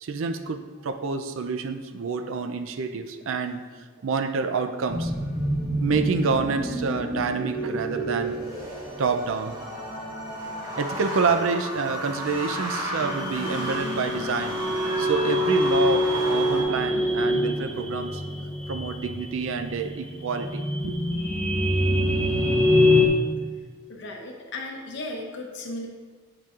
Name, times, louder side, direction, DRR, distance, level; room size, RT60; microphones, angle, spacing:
voice 1, 0.0-3.6 4.0-5.1 5.8-8.4 9.0-9.5 10.8-14.6 15.0-18.2 18.7-21.2, right 4 dB, 70° right, 8 dB, 0.4 m, -28 dB
sound 1, 4.9-16.6, right 1 dB, 15° right, 1.1 m, -31 dB
sound 2, 13.0-23.1, left 1 dB, 10° left, 0.7 m, -24 dB
voice 2, 23.9-25.9, left 2 dB, 55° left, 1 dB, 0.7 m, -35 dB
7.6 x 6.9 x 2.4 m, 1.5 s
head